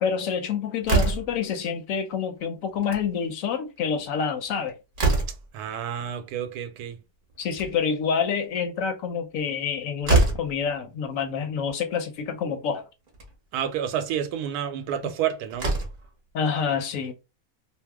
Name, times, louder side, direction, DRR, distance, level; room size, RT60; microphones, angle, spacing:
voice 1, 0.0-4.8 7.4-12.8 16.3-17.1, left 6 dB, 70° left, 0.9 m, -27 dB
Slam, 0.8-1.5 2.7-3.1 3.4-3.5 3.8-3.9 4.4-5.6 7.3-8.0 9.6-9.7 10.0-10.6 11.7-11.8 12.2-12.3 13.1-13.3 15.0-15.1 15.5-16.1, right 3 dB, 45° right, 0.8 m, -24 dB
voice 2, 5.5-7.0 13.5-15.7, right 9 dB, 90° right, 1.1 m, -29 dB
2.7 x 2.0 x 3.4 m
omnidirectional pair, 1.6 m